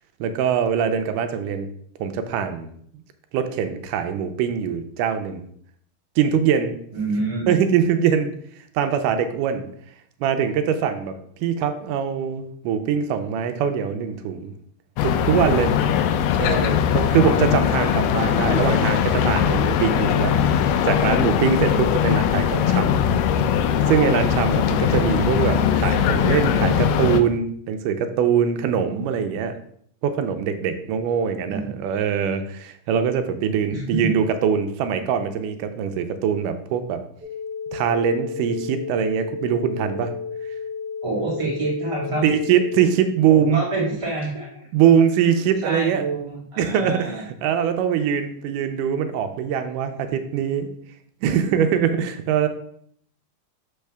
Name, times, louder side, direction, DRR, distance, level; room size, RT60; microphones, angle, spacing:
voice 1, 0.2-1.7 2.0-2.7 3.3-5.5 6.2-6.7 7.5-8.4 8.8-9.7 10.2-14.5 15.0-15.7 16.4-20.4 20.8-23.1 23.9-29.6 30.0-37.0 37.7-40.1 42.2-43.6 44.7-46.0 46.6-50.7 51.2-52.5, right 8 dB, 80° right, 7 dB, 1.9 m, -22 dB
voice 2, 6.9-7.5 31.4-31.8 33.7-34.1 41.0-42.3 43.3-44.5 45.6-47.2, right 2 dB, 30° right, -5 dB, 0.6 m, -27 dB
sound 1, 15.0-27.2, left 8 dB, 80° left, 2.0 m, -20 dB
sound 2, 37.2-42.8, left 6 dB, 60° right, 1.2 m, -32 dB
6.5 x 5.5 x 3.4 m, 0.64 s
omnidirectional pair, 4.2 m